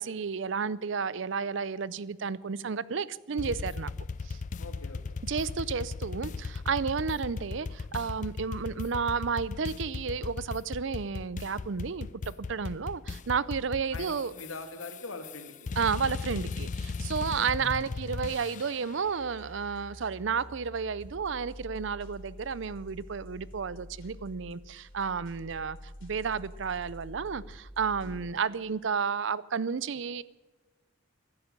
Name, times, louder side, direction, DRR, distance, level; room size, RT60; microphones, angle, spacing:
voice 1, 0.0-3.9 4.2-4.4 5.2-14.3 15.8-30.2, right 5 dB, 65° right, 19 dB, 0.5 m, -32 dB
sound 1, 3.4-19.0, left 4 dB, 35° left, 0.4 m, -37 dB
voice 2, 4.6-5.5 13.9-15.7 17.2-17.4 28.0-28.4, left 3 dB, 85° left, 6 dB, 2.1 m, -44 dB
sound 2, 19.0-28.2, equal, 65° left, 3.8 m, -47 dB
14.5 x 12.0 x 6.6 m, 1.3 s
head